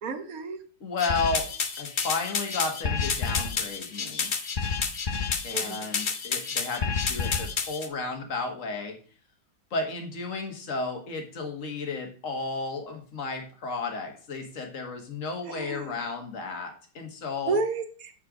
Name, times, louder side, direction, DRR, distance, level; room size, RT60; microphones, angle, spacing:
voice 1, 0.0-0.6 5.5-5.9 15.5-16.0 17.4-18.1, right 3 dB, 50° right, 7 dB, 1.3 m, -31 dB
voice 2, 0.8-1.5 1.8-4.3 5.4-8.9 9.7-17.6, left 3 dB, 40° left, 4 dB, 1.9 m, -33 dB
sound 1, 1.0-7.9, left 5 dB, 70° left, 0.4 m, -29 dB
8.8 x 4.7 x 5.0 m, 0.41 s
omnidirectional pair, 2.2 m